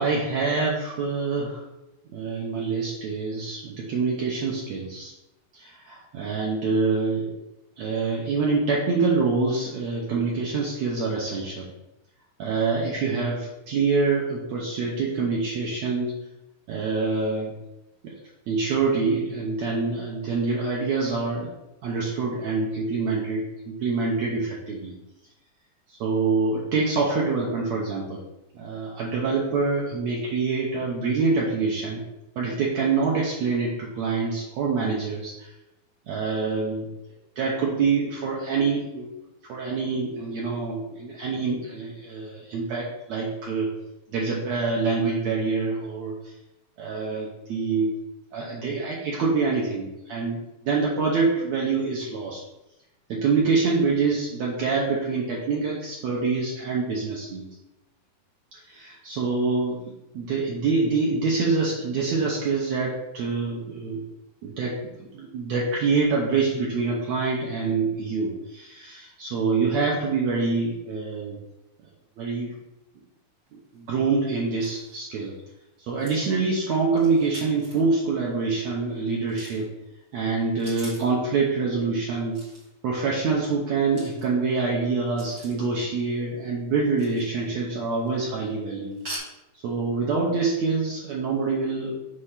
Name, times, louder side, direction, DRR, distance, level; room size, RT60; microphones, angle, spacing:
voice 1, 0.0-1.6 2.1-5.1 5.5-7.3 7.8-11.7 12.4-16.1 16.7-17.5 18.0-18.1 18.5-21.5 21.8-24.9 25.9-28.2 28.5-32.0 32.4-35.5 36.1-36.9 37.4-39.1 39.5-43.7 44.1-46.2 46.8-48.0 48.3-52.4 53.1-57.5 58.5-64.0 64.4-71.4 72.2-72.5 73.5-75.3 75.9-79.7 80.1-82.4 82.8-89.0 89.6-92.0, right 4 dB, 80° right, -3 dB, 1.5 m, -26 dB
sound 1, 73.5-73.6 73.7-73.8 74.3-74.4 74.6-75.1 76.0-77.9 79.2-79.8 80.4-81.2 82.3-82.8 83.9-84.6 85.2-85.7 86.9-87.5 87.9-88.2 88.9-89.2, right 1 dB, 30° right, 1.4 m, -44 dB
6.4 x 3.2 x 5.6 m, 0.93 s
omnidirectional pair, 4.3 m